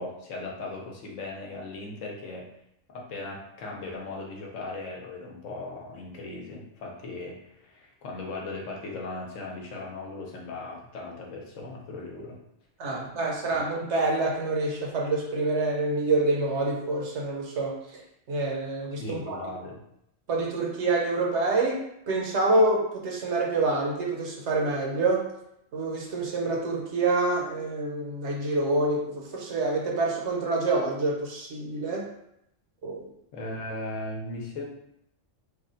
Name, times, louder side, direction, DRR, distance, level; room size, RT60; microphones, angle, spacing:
voice 1, 0.0-2.5 2.9-12.4 19.0-19.8 33.3-34.7, left 2 dB, 75° left, -1 dB, 1.1 m, -38 dB
voice 2, 12.8-18.0 18.3-19.4 20.3-21.8 22.1-25.3 25.7-32.1 32.8-33.0, right 2 dB, 65° right, -1 dB, 1.0 m, -27 dB
3.4 x 2.2 x 3.8 m, 0.78 s
omnidirectional pair, 1.3 m